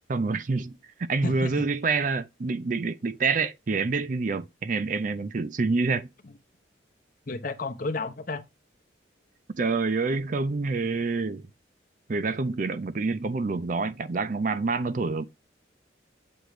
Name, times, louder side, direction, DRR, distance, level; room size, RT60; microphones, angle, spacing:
voice 1, 0.1-0.8 1.1-6.1 9.6-11.4 12.1-15.2, right 4 dB, 40° right, 0.4 m, -27 dB
voice 2, 1.2-1.7 7.3-8.4, left 3 dB, 45° left, 0.8 m, -32 dB
7.7 x 3.0 x 4.9 m
head